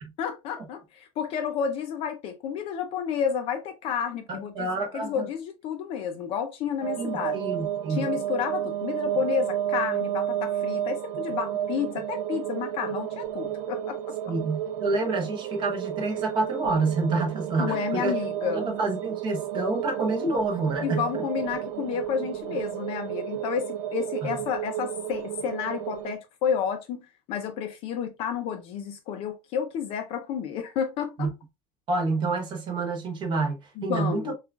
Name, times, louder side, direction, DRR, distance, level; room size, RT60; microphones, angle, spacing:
voice 1, 0.2-4.7 4.9-7.4 7.9-14.3 17.6-18.6 20.8-31.3 33.8-34.3, left 7 dB, 30° left, 0.5 m, -31 dB
voice 2, 4.3-5.3 7.0-8.1 14.3-18.1 18.5-21.2 24.2-24.4 31.2-31.3 31.9-34.3, right 3 dB, 25° right, 0.9 m, -28 dB
sound 1, 6.8-26.1, right 11 dB, 60° right, 0.5 m, -32 dB
6.8 x 2.4 x 2.3 m
supercardioid pair, 175°, 18 cm